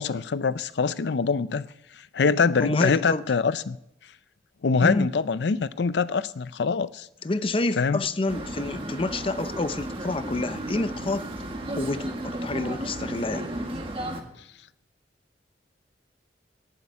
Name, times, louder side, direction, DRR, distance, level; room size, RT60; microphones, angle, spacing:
voice 1, 0.0-1.6 2.1-3.8 4.6-7.1 7.8-8.0, left 5 dB, 75° left, 15 dB, 0.5 m, -24 dB
voice 2, 2.6-3.2 4.8-5.1 7.2-11.3 11.8-13.5, left 2 dB, 30° left, 13 dB, 0.6 m, -28 dB
sound 1, 8.3-14.2, right 1 dB, 30° right, 1.7 m, -34 dB
11.0 x 10.5 x 9.3 m, 0.79 s
head